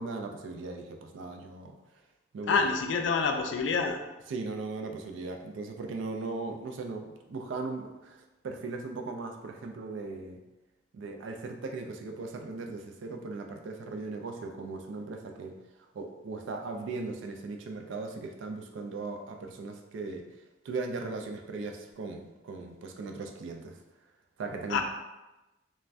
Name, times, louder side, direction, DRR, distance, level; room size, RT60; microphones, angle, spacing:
voice 1, 0.0-1.8 2.3-2.6 4.3-10.4 10.9-15.5 15.9-20.2 20.6-23.8 24.4-24.8, right 3 dB, 75° right, 4 dB, 0.3 m, -38 dB
voice 2, 2.5-4.0 24.7-24.8, left 5 dB, 70° left, 4 dB, 0.3 m, -27 dB
2.5 x 2.1 x 3.2 m, 1.0 s
head